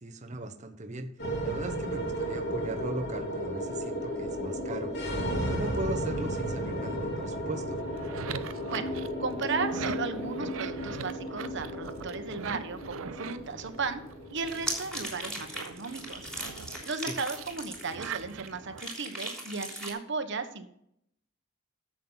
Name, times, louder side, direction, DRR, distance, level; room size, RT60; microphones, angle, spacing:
voice 1, 0.0-1.1 1.4-4.9 5.5-7.8 17.1-17.2, right 2 dB, 35° right, 5 dB, 1.0 m, -38 dB
sound 1, 1.2-19.6, equal, 55° left, 3.3 m, -35 dB
sound 2, 7.8-14.5 14.9-18.8, right 6 dB, 80° right, 0.6 m, -42 dB
voice 2, 9.2-14.0 14.3-16.3 16.8-20.7, right 4 dB, 60° right, 8 dB, 1.2 m, -35 dB
sound 3, 14.4-18.5 18.8-19.9, right 1 dB, 5° left, 3.4 m, -38 dB
13.5 x 7.6 x 4.0 m, 0.73 s
head